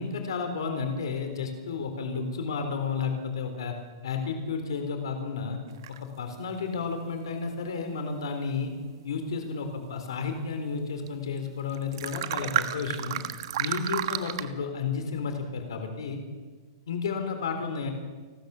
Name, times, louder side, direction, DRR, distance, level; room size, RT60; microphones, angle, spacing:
voice 1, 0.0-3.8 4.0-5.6 5.9-8.7 9.0-13.2 13.6-16.2 16.9-17.9, left 5 dB, 85° left, 6 dB, 3.9 m, -32 dB
sound 1, 5.8-6.0 6.8-6.9 11.1-11.2 11.4-11.5 11.7-14.5, right 12 dB, 60° right, 1.5 m, -31 dB
30.0 x 13.5 x 7.2 m, 1.4 s
hypercardioid pair, 155°, 2 cm